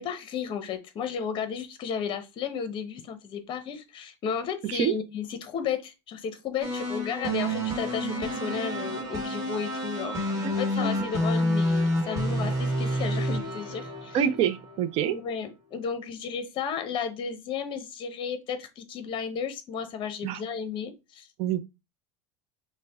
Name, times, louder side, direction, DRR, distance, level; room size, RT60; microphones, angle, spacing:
voice 1, 0.0-14.2 15.0-21.3, left 7 dB, 35° left, 0.9 m, -33 dB
voice 2, 4.6-4.9 10.4-10.5 10.8-11.1 14.1-15.2 20.2-20.4 21.4-21.6, right 9 dB, 45° right, 0.5 m, -26 dB
sound 1, 6.6-14.8, equal, 20° right, 1.5 m, -29 dB
5.8 x 2.2 x 3.4 m
supercardioid pair, 145°, 15 cm